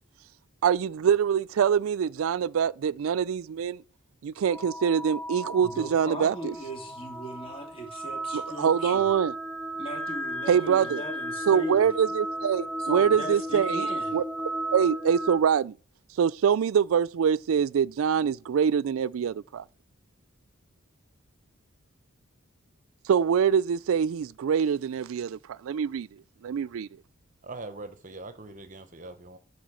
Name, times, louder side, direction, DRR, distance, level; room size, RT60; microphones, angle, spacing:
voice 1, 0.6-3.8 4.2-6.5 8.3-9.3 10.5-11.0 11.5-13.9 14.1-14.2 14.7-15.8 16.2-19.6 23.1-26.1 26.4-26.9, right 7 dB, 85° right, 0.4 m, -24 dB
sound 1, 4.5-15.4, right 1 dB, 10° left, 1.4 m, -34 dB
voice 2, 5.5-9.1 9.8-11.9 12.8-14.2, equal, 25° left, 3.0 m, -38 dB
voice 3, 27.4-29.4, right 3 dB, 40° right, 0.9 m, -42 dB
10.5 x 5.0 x 6.2 m
head